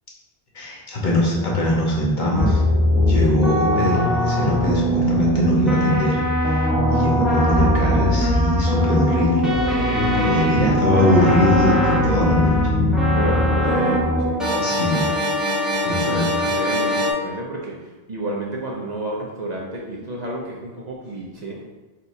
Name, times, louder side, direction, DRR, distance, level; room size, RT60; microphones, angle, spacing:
voice 1, 0.5-2.6 3.0-6.2 6.5-6.6 6.9-9.8 10.1-12.8 14.6-15.1 15.8-16.3, left 1 dB, 50° left, -4 dB, 1.2 m, -22 dB
sound 1, 2.3-17.1, equal, ahead, 0.7 m, -20 dB
voice 2, 10.2-11.0 13.1-15.2 16.0-21.6, right 1 dB, 50° right, -3 dB, 0.7 m, -31 dB
4.6 x 4.2 x 2.7 m, 1.2 s
omnidirectional pair, 1.0 m